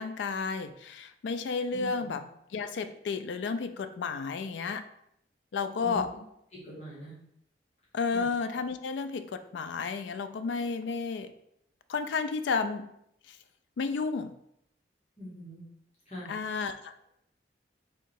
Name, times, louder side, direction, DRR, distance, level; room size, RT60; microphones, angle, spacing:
voice 1, 0.0-2.2 2.5-4.9 5.5-6.1 7.9-11.3 11.9-12.9 13.3-13.4 13.8-14.4 16.3-17.0, left 5 dB, 85° left, 10 dB, 0.4 m, -32 dB
voice 2, 1.7-2.1 5.8-6.0 6.5-7.1 8.1-8.3 15.2-15.6 16.0-16.3, equal, 40° left, -7 dB, 1.5 m, -42 dB
3.6 x 2.9 x 4.5 m, 0.76 s
head